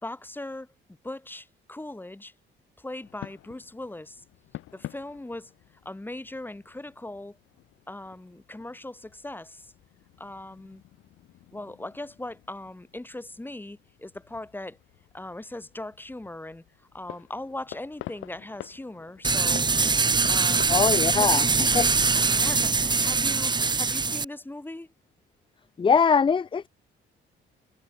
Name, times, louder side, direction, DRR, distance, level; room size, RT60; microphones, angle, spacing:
voice 1, 0.0-0.7 1.0-2.3 2.8-4.2 4.7-5.5 5.8-7.4 7.9-9.7 10.2-10.8 11.5-14.8 15.1-19.7 20.3-20.7 21.1-21.4 21.9-24.9, left 1 dB, 10° left, 2.3 m, -39 dB
sound 1, 3.0-21.1, left 15 dB, 90° left, 4.6 m, -48 dB
sound 2, 19.2-24.2, right 4 dB, 20° right, 0.9 m, -23 dB
voice 2, 20.7-21.9 25.8-26.7, left 6 dB, 25° left, 0.5 m, -22 dB
cardioid pair, 90°, 20 cm